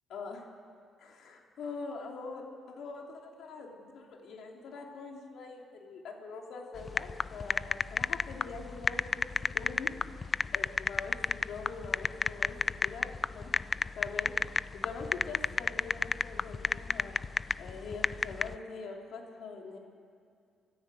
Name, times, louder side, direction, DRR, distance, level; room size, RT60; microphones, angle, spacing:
voice 1, 0.1-0.5 1.0-9.3 9.5-9.9 10.5-12.6 12.8-13.5 13.9-17.2 17.6-19.8, left 4 dB, 70° left, 1 dB, 3.5 m, -43 dB
sound 1, 6.8-18.6, left 4 dB, 35° left, 0.4 m, -31 dB
24.5 x 14.0 x 7.9 m, 2.3 s
cardioid pair, 90°, 0 cm